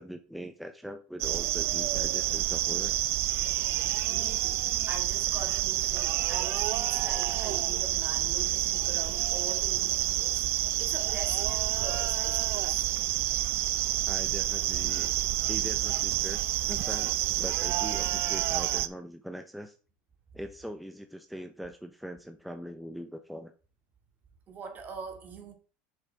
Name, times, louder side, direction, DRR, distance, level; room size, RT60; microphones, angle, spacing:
voice 1, 0.0-2.9 14.1-15.1 15.5-19.8 20.3-23.5, equal, ahead, 0.7 m, -41 dB
sound 1, 1.2-18.9, right 15 dB, 55° right, 0.6 m, -28 dB
voice 2, 4.1-12.9 24.5-25.5, right 5 dB, 40° right, 2.3 m, -43 dB
6.7 x 6.0 x 4.6 m
supercardioid pair, 100°, 5 cm